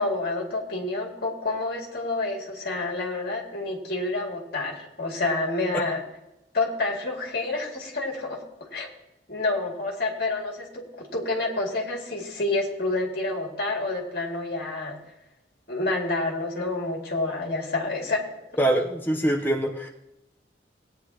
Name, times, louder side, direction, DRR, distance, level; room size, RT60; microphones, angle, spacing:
voice 1, 0.0-6.0 6.5-8.9 9.3-15.0 15.7-18.4, left 2 dB, 55° left, -1 dB, 2.4 m, -28 dB
voice 2, 18.6-19.9, right 1 dB, 10° left, 0 dB, 0.8 m, -24 dB
18.0 x 9.5 x 2.9 m, 0.92 s
head